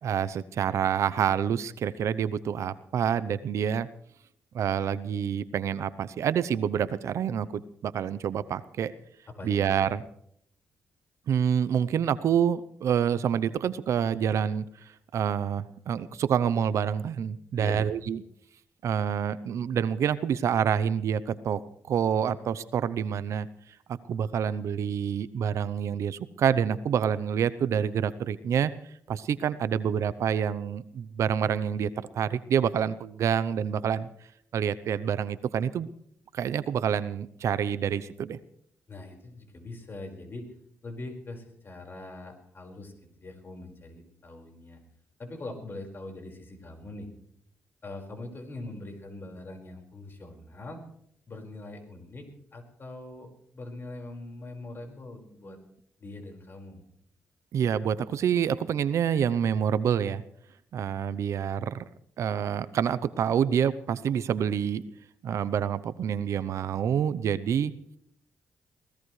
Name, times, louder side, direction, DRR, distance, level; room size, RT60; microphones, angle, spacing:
voice 1, 0.0-3.9 4.5-8.9 9.4-10.0 11.3-18.2 18.8-21.6 21.9-23.5 24.1-28.7 29.1-34.1 34.5-35.9 36.3-38.4 57.5-60.2 60.7-61.8 62.2-64.8 65.2-67.7, right 8 dB, 70° right, 16 dB, 0.7 m, -27 dB
voice 2, 17.6-17.9 38.9-40.5 40.8-42.9 43.2-44.8 45.2-47.1 47.8-50.8 51.3-55.6 56.0-56.8, left 2 dB, 45° left, 3 dB, 5.1 m, -42 dB
23.5 x 17.5 x 3.3 m, 0.69 s
supercardioid pair, 65°, 5 cm